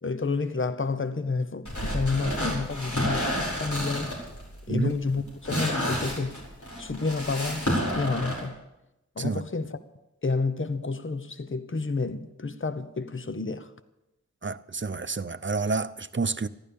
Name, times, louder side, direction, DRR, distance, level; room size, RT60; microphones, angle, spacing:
voice 1, 0.0-4.2 4.7-6.4 6.8-8.5 9.2-9.8 10.2-13.7, left 4 dB, 45° left, 0.9 m, -30 dB
sound 1, 1.7-8.4, equal, 80° left, 5.4 m, -30 dB
voice 2, 14.4-16.5, right 4 dB, 40° right, 0.7 m, -29 dB
14.5 x 11.5 x 7.0 m
wide cardioid pair, 45°, 29 cm